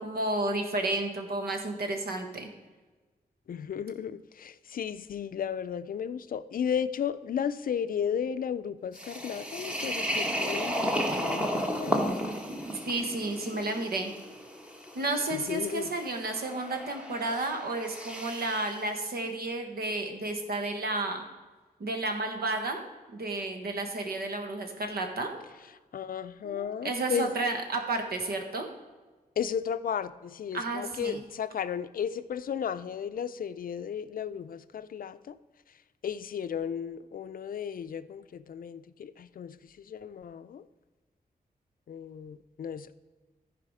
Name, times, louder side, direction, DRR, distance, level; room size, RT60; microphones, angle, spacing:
voice 1, 0.0-2.5 12.9-14.1 14.9-21.2 21.8-22.8 23.1-25.3 26.4-28.7 30.5-31.2, right 2 dB, 85° right, 4 dB, 1.4 m, -32 dB
voice 2, 3.5-12.2 15.5-15.9 25.9-27.3 29.4-35.4 36.0-40.7 41.9-42.9, left 8 dB, 65° left, 13 dB, 0.4 m, -34 dB
sound 1, 8.9-18.7, equal, 5° right, 1.1 m, -34 dB
14.0 x 4.9 x 4.9 m, 1.3 s
wide cardioid pair, 165°, 16 cm